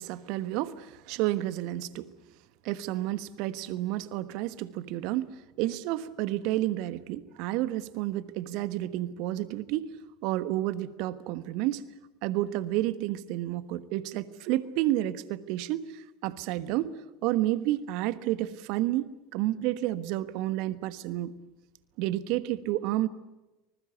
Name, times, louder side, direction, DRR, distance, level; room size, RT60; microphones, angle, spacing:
voice 1, 0.0-2.1 2.6-10.0 10.2-11.8 12.2-19.0 19.3-21.4 22.0-23.1, right 15 dB, 55° right, 15 dB, 1.2 m, -30 dB
25.5 x 20.5 x 8.2 m, 1.0 s
figure-of-eight pair, 75°, 0 cm